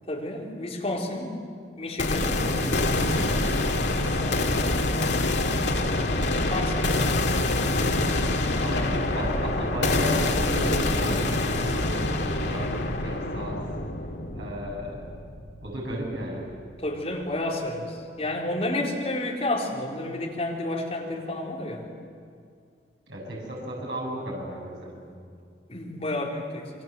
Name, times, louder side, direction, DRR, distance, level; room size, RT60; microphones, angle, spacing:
voice 1, 0.1-1.4 1.8-2.4 4.1-4.9 5.7-6.2 6.5-6.9 16.8-21.9 25.7-26.7, left 1 dB, 35° left, -2 dB, 4.2 m, -31 dB
sound 1, 2.0-15.9, left 2 dB, 85° left, 2.4 m, -26 dB
voice 2, 2.2-3.5 8.6-12.7 13.0-13.6 14.3-15.1 15.6-16.5 23.1-24.9, right 1 dB, 80° right, -3 dB, 7.8 m, -34 dB
28.5 x 24.5 x 7.7 m, 2.3 s
head